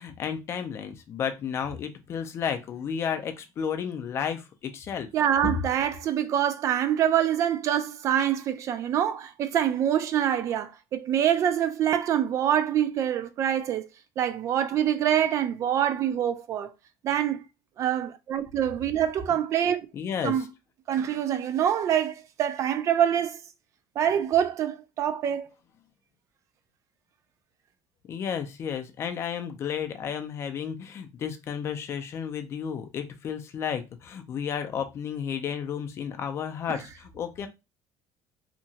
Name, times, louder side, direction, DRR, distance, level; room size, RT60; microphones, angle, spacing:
voice 1, 0.0-5.1 19.9-20.4 28.1-37.5, left 7 dB, 30° left, 0.4 m, -32 dB
voice 2, 5.1-13.8 14.2-16.7 17.0-17.4 17.8-19.8 20.2-20.5 20.9-23.4 24.0-25.5 36.7-36.8, right 10 dB, 40° right, 0.3 m, -25 dB
2.9 x 2.2 x 2.7 m
cardioid pair, 165°, 8 cm